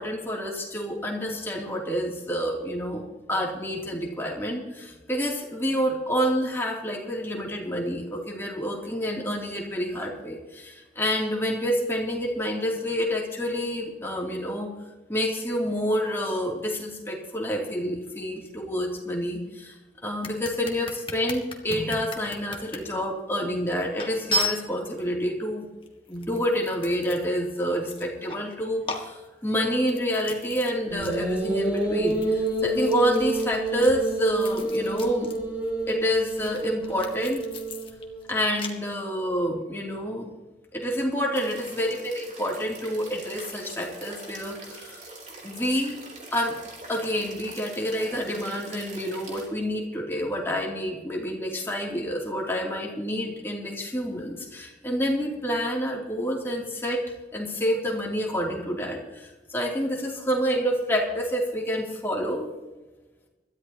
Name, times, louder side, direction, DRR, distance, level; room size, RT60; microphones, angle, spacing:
voice 1, 0.0-14.7 15.1-19.8 20.0-25.7 26.1-35.3 35.9-37.4 38.3-40.3 40.7-45.0 45.4-46.0 46.3-46.6 46.9-57.0 57.3-62.5, equal, 15° left, -2 dB, 2.8 m, -28 dB
sound 1, 20.2-22.8 23.4-23.5 24.0-25.1 25.8-27.5 27.8-28.5 28.8-30.7 31.0-31.2 31.4-35.4 35.6-38.7, left 2 dB, 30° left, 1.6 m, -35 dB
sound 2, 30.9-38.3, right 1 dB, 10° right, 3.5 m, -28 dB
sound 3, 41.3-49.5, right 2 dB, 40° right, 3.5 m, -43 dB
22.0 x 13.5 x 2.9 m, 1.1 s
head